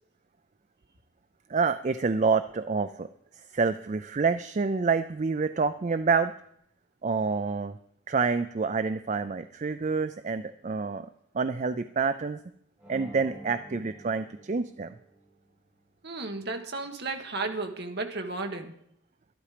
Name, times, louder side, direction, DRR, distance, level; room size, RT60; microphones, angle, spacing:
voice 1, 1.5-3.1 3.3-6.3 7.0-7.8 8.1-11.1 11.3-12.4 12.9-14.9, right 4 dB, 35° right, 11 dB, 0.4 m, -27 dB
sound 1, 12.8-15.5, right 1 dB, 5° right, 5.2 m, -48 dB
voice 2, 16.0-18.7, right 3 dB, 50° right, 5 dB, 1.5 m, -34 dB
12.5 x 11.5 x 5.0 m, 0.71 s
head